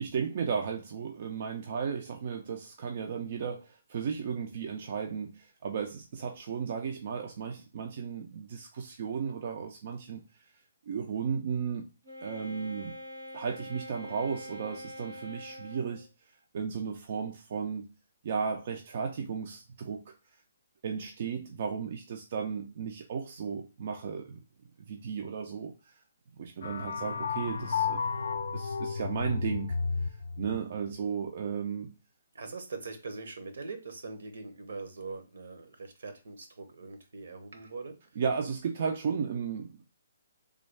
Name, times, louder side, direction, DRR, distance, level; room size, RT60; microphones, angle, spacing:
voice 1, 0.0-10.2 10.9-11.9 12.2-13.0 13.3-16.1 16.5-17.9 18.2-20.1 20.8-24.4 24.9-25.9 26.4-28.1 28.5-31.9 38.2-39.8, right 6 dB, 45° right, 3 dB, 0.4 m, -35 dB
Wind instrument woodwind instrument, 12.0-16.1, left 1 dB, 85° right, 1.6 m, -44 dB
sound 1, 26.6-30.6, left 5 dB, 70° left, 0.3 m, -32 dB
voice 2, 32.3-38.0, right 3 dB, 70° right, 7 dB, 0.9 m, -42 dB
3.3 x 2.2 x 3.2 m, 0.31 s
hypercardioid pair, 165°, 0 cm